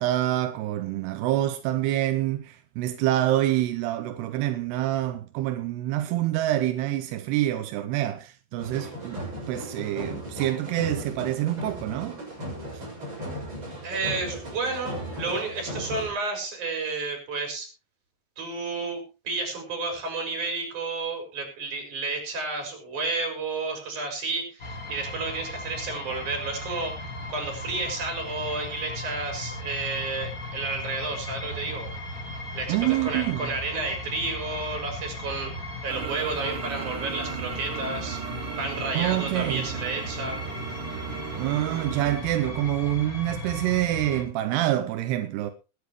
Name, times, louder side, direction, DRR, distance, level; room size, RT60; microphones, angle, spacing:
voice 1, 0.0-12.2 32.7-33.5 38.9-39.7 41.4-45.5, right 14 dB, 90° right, 2.9 m, -26 dB
sound 1, 8.6-16.1, equal, 30° right, 7.2 m, -36 dB
voice 2, 13.8-17.7 18.4-26.9 27.3-31.9 32.5-35.5 35.8-38.2 38.6-40.4, right 3 dB, 50° right, 6.2 m, -31 dB
sound 2, 24.6-44.2, left 1 dB, 40° left, 1.3 m, -36 dB
sound 3, 35.9-42.2, right 13 dB, 70° right, 2.0 m, -37 dB
21.5 x 10.0 x 3.1 m
omnidirectional pair, 4.6 m